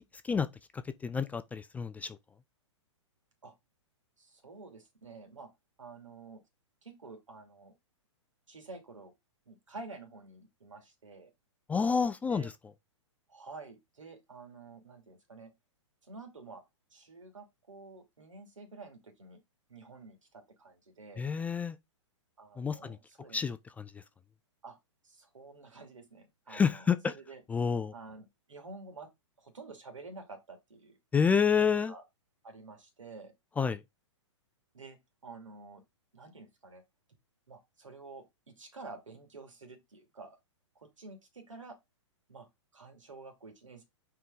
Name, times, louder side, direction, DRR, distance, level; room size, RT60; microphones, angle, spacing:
voice 1, 0.7-2.2 11.7-12.5 21.2-21.8 22.6-23.0 23.3-24.0 26.5-27.1 27.5-27.9 31.1-31.9 33.6-33.8, left 6 dB, 10° left, 0.3 m, -29 dB
voice 2, 4.2-5.5 5.8-6.4 6.8-7.7 8.5-9.1 9.5-11.3 12.2-12.5 13.3-15.5 16.1-16.6 16.9-19.4 19.7-21.2 22.4-23.4 24.6-24.8 25.0-26.8 27.2-27.4 27.9-29.1 29.4-31.0 31.7-32.0 32.4-33.3 34.7-35.8 36.1-36.8 37.5-40.4 40.7-41.8 42.3-42.5 42.7-43.8, right 3 dB, 85° right, 2.6 m, -49 dB
5.6 x 4.8 x 3.7 m
hypercardioid pair, 120°, 16 cm